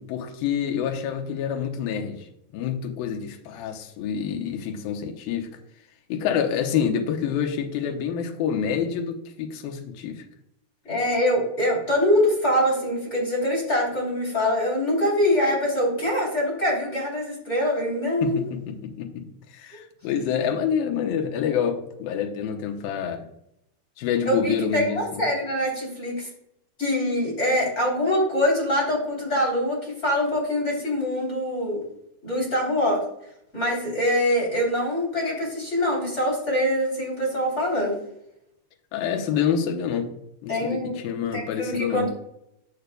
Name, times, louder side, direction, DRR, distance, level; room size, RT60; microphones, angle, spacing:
voice 1, 0.0-2.2 2.5-5.5 6.1-10.2 18.2-19.2 19.5-23.3 24.0-25.2 38.9-40.1 40.4-42.1, left 8 dB, 75° left, 3 dB, 2.5 m, -27 dB
voice 2, 10.9-18.4 24.2-26.3 26.8-31.8 32.2-33.0 33.5-38.0 40.5-41.0 41.3-42.1, left 1 dB, 20° left, -4 dB, 3.2 m, -24 dB
13.5 x 6.5 x 2.3 m, 0.77 s
omnidirectional pair, 4.6 m